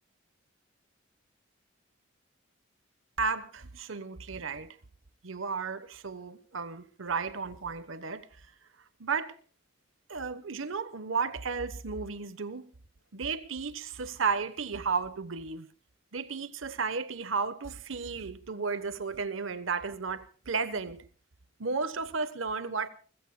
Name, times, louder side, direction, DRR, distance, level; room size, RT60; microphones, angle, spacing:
voice 1, 3.2-4.8 5.2-8.3 9.0-9.4 10.1-12.7 13.1-15.7 16.1-21.0 21.6-22.9, right 5 dB, 75° right, 1.0 m, -33 dB
29.5 x 15.5 x 2.2 m
head